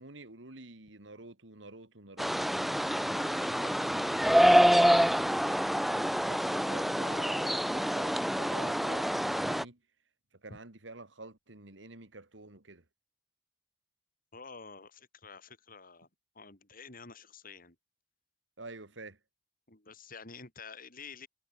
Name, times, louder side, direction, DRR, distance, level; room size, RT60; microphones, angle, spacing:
voice 1, 0.0-2.5 5.8-9.8 10.4-12.8 18.6-19.2, right 2 dB, 70° right, 2.6 m, -49 dB
sound 1, 2.2-9.6, equal, ahead, 0.3 m, -26 dB
voice 2, 3.0-5.0 10.5-10.6 14.3-16.1 16.3-17.7 19.7-21.3, left 4 dB, 50° left, 4.6 m, -50 dB
head